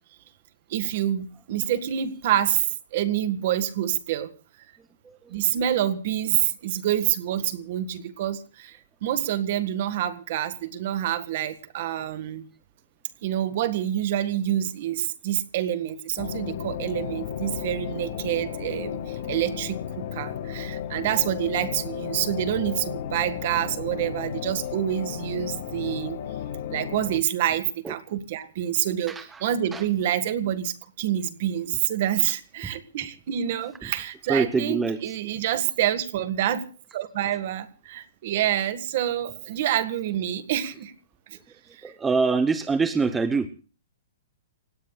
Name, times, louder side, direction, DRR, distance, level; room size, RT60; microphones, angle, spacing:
voice 1, 0.7-2.7 2.9-4.3 5.3-12.5 13.2-26.2 26.7-29.2 29.4-36.6 36.9-40.9 41.3-41.4 41.7-41.9, right 11 dB, 40° right, 11 dB, 1.7 m, -27 dB
voice 2, 5.0-5.4 27.8-27.9 29.1-29.4 29.7-29.8 32.6-32.7 33.8-33.9 34.3-35.0 41.8-43.5, right 4 dB, 10° right, 9 dB, 0.8 m, -25 dB
sound 1, 16.2-27.2, left 9 dB, 45° left, 2.0 m, -34 dB
29.5 x 18.0 x 2.4 m, 0.37 s
hypercardioid pair, 170°, 0 cm